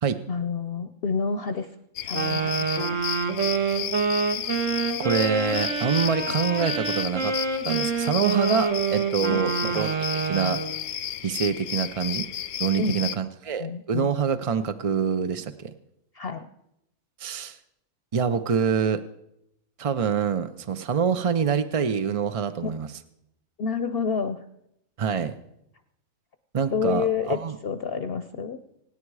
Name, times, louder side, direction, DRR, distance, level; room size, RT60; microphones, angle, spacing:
voice 1, 0.3-1.7 2.0-3.0 9.3-9.4 12.8-13.1 13.6-14.1 16.1-16.4 23.6-24.4 26.7-28.6, left 5 dB, 50° left, 10 dB, 0.8 m, -29 dB
sound 1, 2.0-13.2, left 10 dB, 85° left, 1.2 m, -33 dB
Wind instrument woodwind instrument, 2.1-10.7, right 5 dB, 65° right, 1.9 m, -27 dB
voice 2, 5.0-7.3 7.6-10.0 10.2-10.6 11.2-12.3 12.6-15.7 17.2-17.6 18.1-19.0 19.8-22.9 25.0-25.3 26.5-27.6, right 6 dB, 45° right, 10 dB, 0.4 m, -25 dB
25.0 x 9.9 x 4.8 m, 0.82 s
omnidirectional pair, 1.4 m